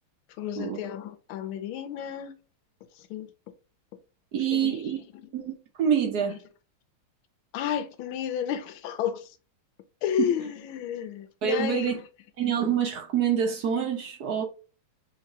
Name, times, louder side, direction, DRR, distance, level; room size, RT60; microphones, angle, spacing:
voice 1, 0.4-2.3 3.0-3.3 4.5-4.8 5.1-5.3 7.5-9.3 10.0-12.0, left 9 dB, 80° left, 1.4 m, -31 dB
voice 2, 4.3-5.0 5.3-6.4 10.2-10.3 11.4-12.0 12.4-14.4, right 8 dB, 65° right, 1.0 m, -26 dB
3.9 x 3.0 x 2.9 m
omnidirectional pair, 2.3 m